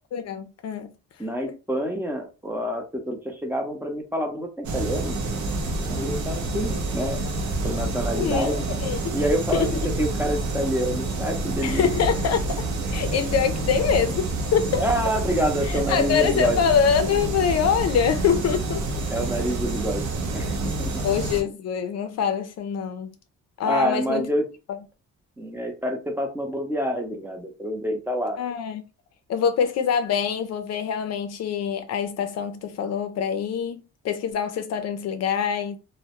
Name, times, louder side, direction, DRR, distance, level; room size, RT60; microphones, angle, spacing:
voice 1, 0.1-0.9 8.1-9.1 9.5-9.7 11.6-14.9 15.7-18.8 21.0-23.1 23.6-24.3 28.4-28.8 29.3-35.8, left 7 dB, 60° left, 0.4 m, -25 dB
voice 2, 1.2-5.2 5.9-7.2 7.6-8.6 9.1-9.7 10.0-11.9 14.8-16.6 19.1-21.0 23.6-24.4 25.4-28.4, equal, 5° right, 0.6 m, -27 dB
sound 1, 4.6-21.4, right 2 dB, 65° right, 0.6 m, -28 dB
2.1 x 2.1 x 2.8 m
cardioid pair, 90°, 30 cm